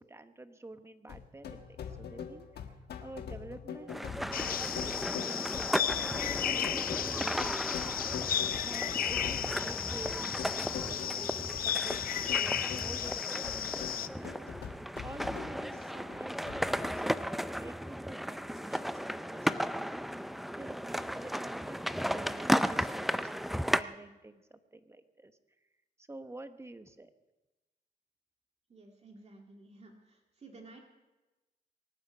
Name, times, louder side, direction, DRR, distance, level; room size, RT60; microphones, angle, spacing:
voice 1, 0.0-7.4 8.6-14.4 15.0-21.8 22.1-25.4 26.0-27.1, right 2 dB, 15° right, 10 dB, 1.1 m, -49 dB
sound 1, 1.1-17.0, left 7 dB, 85° left, 1.3 m, -44 dB
sound 2, 3.9-23.8, equal, ahead, 0.4 m, -35 dB
sound 3, 4.3-14.1, left 9 dB, 60° left, 0.5 m, -34 dB
voice 2, 28.7-30.8, right 3 dB, 40° right, 1 dB, 2.0 m, -53 dB
24.0 x 9.6 x 5.6 m, 1.1 s
cardioid pair, 85°, 16 cm